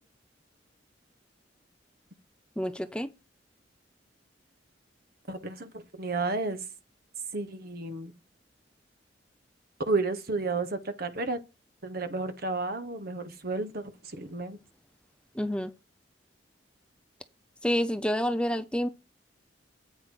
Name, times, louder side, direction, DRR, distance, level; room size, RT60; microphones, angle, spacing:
voice 1, 2.6-3.1 15.3-15.7 17.6-18.9, equal, 5° left, 0.5 m, -28 dB
voice 2, 5.3-5.7 6.0-6.6 7.3-8.1 9.9-11.4 11.8-14.6, right 3 dB, 55° right, 1.4 m, -32 dB
8.8 x 5.9 x 4.9 m
head